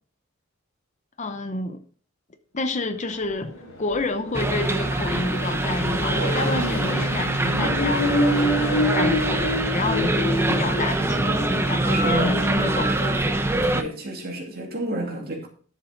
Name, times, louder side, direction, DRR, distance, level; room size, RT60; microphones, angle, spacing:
voice 1, 1.2-1.8 2.5-3.5 3.8-8.1 8.4-13.5, left 2 dB, 35° left, 0.7 m, -29 dB
Accelerating revving vroom, 3.0-13.4, left 1 dB, 70° left, 4.4 m, -28 dB
sound 1, 4.3-13.8, right 2 dB, 10° right, 0.7 m, -24 dB
voice 2, 6.2-6.5 11.8-12.6 13.7-15.5, right 1 dB, 45° right, 2.5 m, -31 dB
11.0 x 7.1 x 3.9 m
head